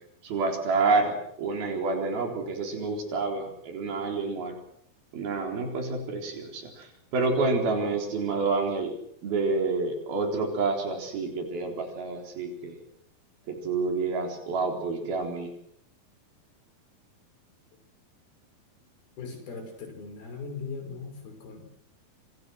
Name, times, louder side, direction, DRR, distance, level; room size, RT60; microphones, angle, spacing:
voice 1, 0.2-4.6 5.1-9.0 9.2-12.8 13.5-15.5, right 3 dB, 80° right, 3 dB, 5.9 m, -28 dB
voice 2, 19.2-21.7, left 4 dB, 85° left, 6 dB, 7.6 m, -39 dB
28.0 x 26.5 x 6.4 m, 0.72 s
omnidirectional pair, 4.2 m